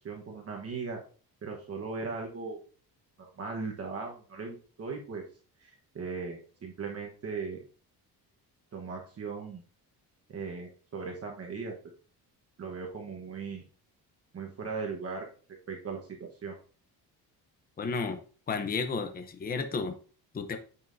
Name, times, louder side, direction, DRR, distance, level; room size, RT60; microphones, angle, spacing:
voice 1, 0.0-1.0 1.4-2.6 3.2-5.2 5.6-7.6 8.7-9.6 10.3-11.7 12.6-13.6 14.3-15.3 15.7-16.6, right 4 dB, 40° right, 0 dB, 1.2 m, -38 dB
voice 2, 17.8-18.2 18.5-20.0 20.3-20.6, left 4 dB, 25° left, 7 dB, 0.7 m, -32 dB
8.8 x 5.6 x 2.7 m, 0.40 s
cardioid pair, 145°, 39 cm